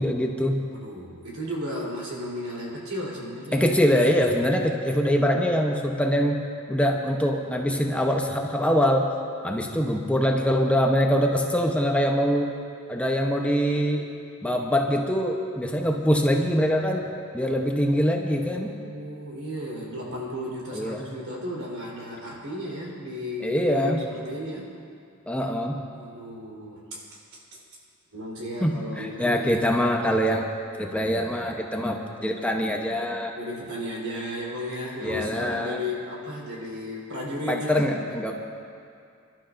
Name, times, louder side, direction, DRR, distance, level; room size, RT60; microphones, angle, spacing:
voice 1, 0.0-0.6 3.5-6.4 6.7-9.1 9.4-12.6 12.9-14.0 14.4-17.1 17.3-18.7 20.7-21.0 23.4-24.0 25.3-25.8 28.6-30.5 30.8-33.3 35.0-35.8 37.5-38.3, equal, 5° left, 1 dB, 0.8 m, -23 dB
voice 2, 0.7-3.6 9.5-9.9 18.6-24.7 25.9-27.0 28.1-29.7 33.4-38.0, left 1 dB, 85° right, -4 dB, 3.8 m, -34 dB
27.5 x 12.0 x 2.6 m, 2.4 s
head